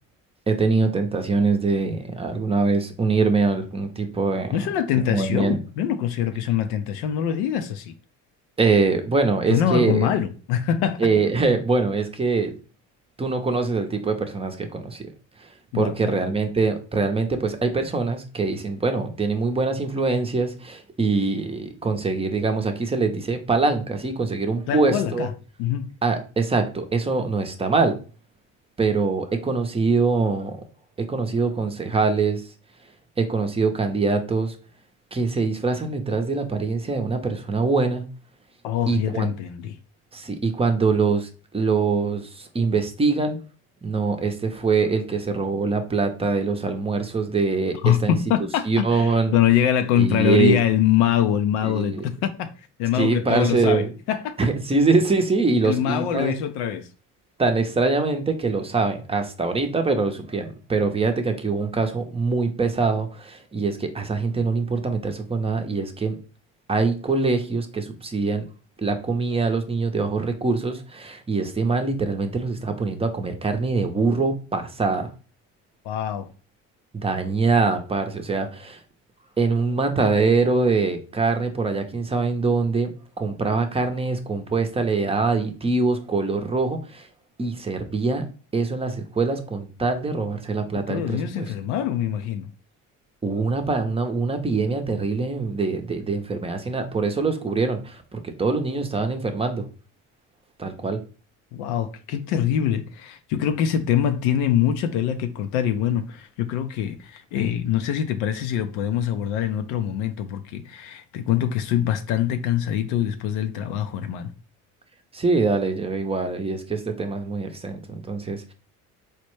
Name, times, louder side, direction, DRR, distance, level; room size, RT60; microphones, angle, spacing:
voice 1, 0.5-4.7 5.1-5.6 8.6-10.1 11.0-12.5 13.2-15.1 15.4-15.5 15.7-25.3 26.0-28.0 28.8-30.6 31.0-32.5 33.2-34.6 35.1-38.0 38.9-39.3 40.1-43.4 43.8-48.2 48.7-49.3 50.0-50.6 51.6-52.0 52.9-53.9 54.4-56.3 57.4-66.2 66.7-68.4 68.8-75.1 76.9-78.8 79.4-87.1 87.4-88.3 88.5-91.5 93.2-99.7 100.6-101.0 115.1-118.5, right 4 dB, 15° right, 0.6 m, -23 dB
voice 2, 4.5-7.9 9.5-11.1 15.7-16.2 24.7-25.3 25.6-25.9 38.6-39.8 47.8-52.5 52.8-54.5 55.6-56.9 75.8-76.3 90.7-92.5 101.5-114.3, left 10 dB, 85° left, 0.5 m, -24 dB
4.3 x 2.1 x 3.0 m
supercardioid pair, 90°, 37 cm